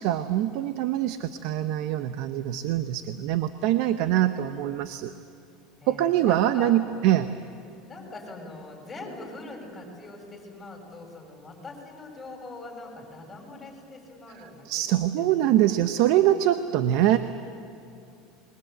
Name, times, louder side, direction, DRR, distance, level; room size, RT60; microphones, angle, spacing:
voice 1, 0.0-5.1 5.9-7.3 14.7-17.2, right 12 dB, 65° right, 10 dB, 0.9 m, -24 dB
voice 2, 5.8-7.0 7.9-15.9, left 2 dB, 15° left, 1 dB, 6.9 m, -43 dB
28.0 x 22.0 x 8.1 m, 2.8 s
supercardioid pair, 125°, 0 cm